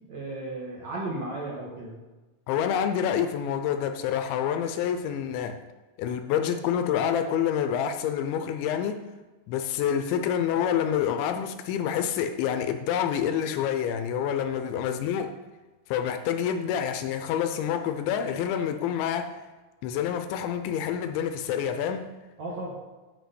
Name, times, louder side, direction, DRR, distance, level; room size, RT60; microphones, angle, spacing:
voice 1, 0.1-2.0 14.6-14.8 22.4-22.8, right 2 dB, 55° right, -4 dB, 2.0 m, -35 dB
voice 2, 2.5-5.6 6.0-9.1 9.5-15.3 15.9-19.3 19.8-22.1, left 9 dB, 80° left, 8 dB, 2.8 m, -27 dB
10.5 x 5.1 x 8.1 m, 1.2 s
omnidirectional pair, 5.7 m